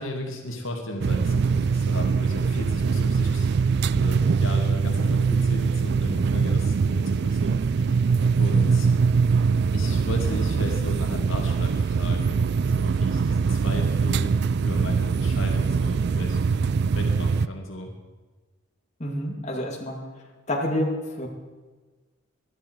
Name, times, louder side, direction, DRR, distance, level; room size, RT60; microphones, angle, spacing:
voice 1, 0.0-3.5 3.9-8.1 8.4-8.9 9.7-14.3 14.6-16.4 16.9-17.9, left 1 dB, 70° left, 2 dB, 2.2 m, -35 dB
sound 1, 1.0-17.5, right 5 dB, 50° right, 0.3 m, -23 dB
voice 2, 19.0-20.0 20.5-21.3, left 1 dB, 35° left, -1 dB, 2.5 m, -28 dB
19.5 x 12.5 x 4.7 m, 1.3 s
head